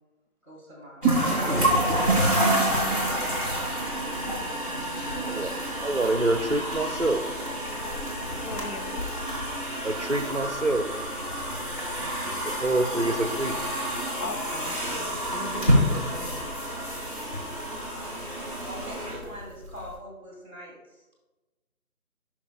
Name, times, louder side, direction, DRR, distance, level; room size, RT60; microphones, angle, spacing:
voice 1, 0.4-1.8 18.7-21.0, equal, 15° left, -4 dB, 2.2 m, -44 dB
sound 1, 1.0-19.9, right 1 dB, 35° left, 1.8 m, -28 dB
voice 2, 5.1-5.5 5.8-7.2 9.8-10.8 12.6-13.6, right 2 dB, 50° right, 6 dB, 0.5 m, -26 dB
voice 3, 8.4-9.0 12.0-12.4 14.2-16.5, left 3 dB, 85° left, 9 dB, 0.8 m, -40 dB
10.0 x 5.9 x 2.2 m, 1.1 s
figure-of-eight pair, 180°, 44 cm